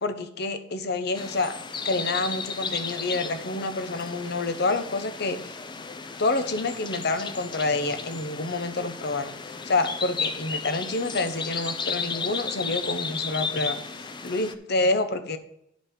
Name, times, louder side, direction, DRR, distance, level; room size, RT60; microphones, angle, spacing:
voice 1, 0.0-1.5 1.8-5.6 6.2-9.3 9.6-15.4, left 2 dB, 55° left, 10 dB, 0.9 m, -28 dB
sound 1, 1.1-14.5, left 5 dB, 25° left, 0.6 m, -34 dB
10.5 x 5.1 x 5.2 m, 0.74 s
head